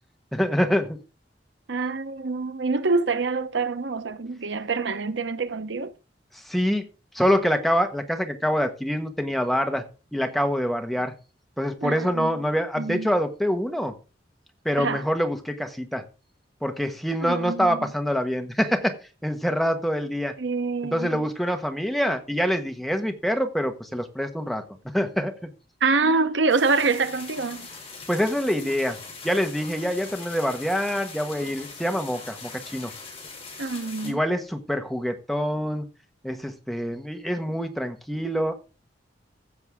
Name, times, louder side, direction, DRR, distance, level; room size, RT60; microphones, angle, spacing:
voice 1, 0.3-1.0 6.4-6.8 7.1-9.8 10.1-11.1 11.6-13.9 14.6-16.0 16.6-18.9 19.2-20.3 20.8-24.6 24.9-25.5 28.1-29.0 29.2-32.9 34.0-35.9 36.2-38.5, equal, ahead, 1.3 m, -25 dB
voice 2, 1.7-5.9 11.8-12.4 12.8-13.1 14.8-15.0 17.2-17.9 20.4-21.3 25.8-27.7 33.6-34.2, right 4 dB, 90° right, 0.9 m, -26 dB
sound 1, 26.5-34.1, left 4 dB, 35° left, 5.3 m, -41 dB
15.5 x 6.9 x 3.6 m
head